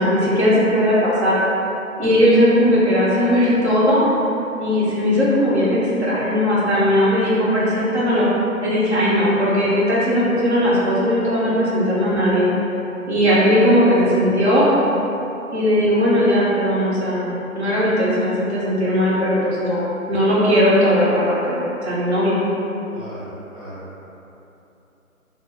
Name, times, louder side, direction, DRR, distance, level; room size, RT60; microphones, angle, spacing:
voice 1, 0.0-1.4 2.0-4.0 4.6-8.3 8.6-12.5 13.1-14.7 15.5-22.4, equal, 50° right, -8 dB, 1.0 m, -18 dB
voice 2, 22.9-24.0, right 1 dB, 25° right, -12 dB, 1.0 m, -38 dB
2.8 x 2.5 x 3.5 m, 2.9 s
figure-of-eight pair, 155°, 43 cm